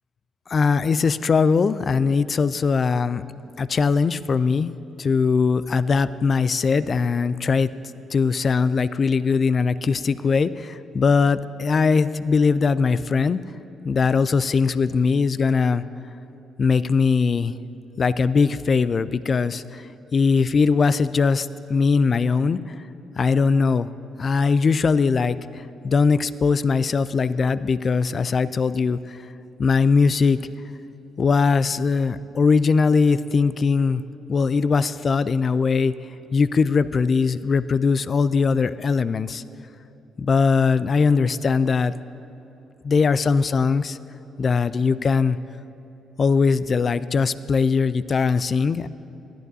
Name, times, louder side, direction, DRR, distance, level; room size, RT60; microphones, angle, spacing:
voice 1, 0.5-3.2 3.6-7.7 8.1-13.4 13.9-15.8 16.6-17.5 18.0-19.9 20.1-22.6 23.2-23.9 24.2-29.2 29.6-30.4 31.2-34.0 34.3-35.9 36.3-39.4 40.2-41.9 42.8-44.0 44.4-45.4 46.2-48.9, left 5 dB, 45° left, 16 dB, 0.4 m, -20 dB
19.0 x 11.0 x 2.7 m, 2.9 s
hypercardioid pair, 50°, 0 cm